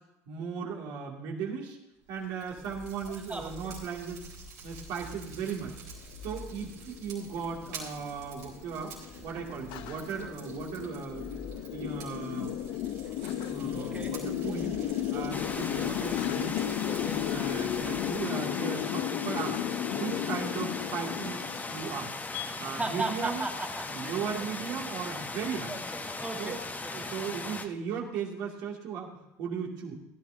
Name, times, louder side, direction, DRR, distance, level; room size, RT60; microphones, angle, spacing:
voice 1, 0.3-1.8 2.1-4.2 4.6-5.7 6.2-9.0 9.2-11.3 11.7-12.6 13.4-14.8 15.1-16.6 17.0-19.6 19.9-22.1 22.6-23.5 23.9-25.7 26.4-26.6 26.9-29.9, right 6 dB, 70° right, -1 dB, 2.5 m, -37 dB
Fire, 2.0-18.2, right 2 dB, 90° right, 4.4 m, -47 dB
voice 2, 3.1-3.7 13.7-14.1 16.9-17.2 22.6-24.7 25.7-27.1, right 2 dB, 15° right, 1 dB, 1.9 m, -38 dB
sound 1, 6.1-22.5, left 11 dB, 75° left, 0.6 m, -34 dB
sound 2, 15.3-27.7, left 3 dB, 20° left, 1.0 m, -38 dB
16.5 x 11.5 x 2.8 m, 0.87 s
supercardioid pair, 85°, 8 cm